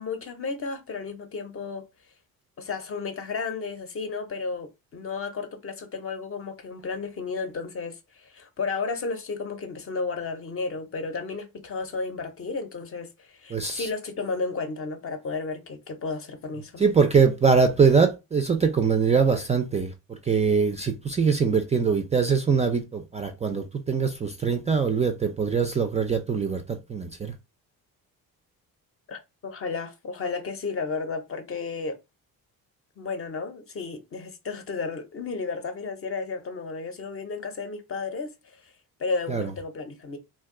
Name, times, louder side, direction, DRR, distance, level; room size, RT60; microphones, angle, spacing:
voice 1, 0.0-1.9 2.6-16.8 29.1-32.0 33.0-38.7 39.0-40.2, left 4 dB, 40° left, 0.6 m, -33 dB
voice 2, 13.5-13.9 16.8-27.3 39.3-39.5, right 5 dB, 20° right, 0.3 m, -23 dB
2.6 x 2.2 x 3.6 m
cardioid pair, 105°, 36 cm